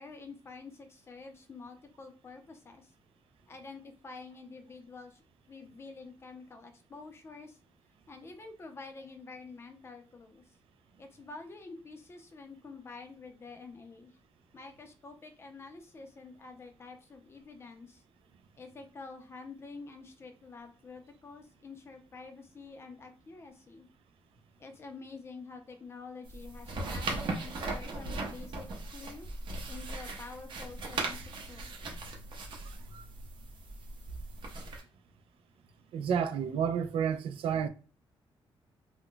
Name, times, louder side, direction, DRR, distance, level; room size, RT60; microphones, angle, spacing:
voice 1, 0.0-2.9 3.5-5.2 5.5-7.6 8.1-10.4 11.0-14.1 14.5-18.0 18.6-23.9 24.6-29.3 29.7-31.7, left 4 dB, 30° left, 0.5 m, -48 dB
Office paper crumple folding handling, 26.3-34.8, right 3 dB, 60° right, 0.7 m, -38 dB
voice 2, 32.6-33.0 35.9-37.7, right 7 dB, 85° right, 0.4 m, -31 dB
2.3 x 2.1 x 3.7 m
wide cardioid pair, 165°, 9 cm